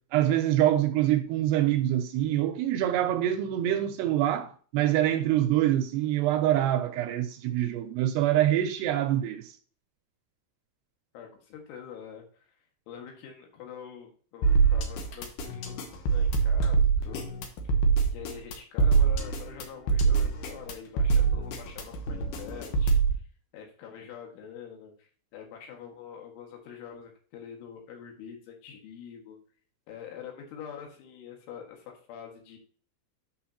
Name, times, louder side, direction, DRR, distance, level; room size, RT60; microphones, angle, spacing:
voice 1, 0.1-9.5, right 12 dB, 85° right, 2.5 m, -25 dB
voice 2, 11.1-12.3 12.9-17.3 18.1-23.0 23.5-24.9 25.3-29.4 29.9-32.6, left 7 dB, 85° left, 4.3 m, -45 dB
sound 1, 14.4-23.2, right 5 dB, 70° left, 2.7 m, -24 dB
9.5 x 6.4 x 2.9 m
omnidirectional pair, 5.4 m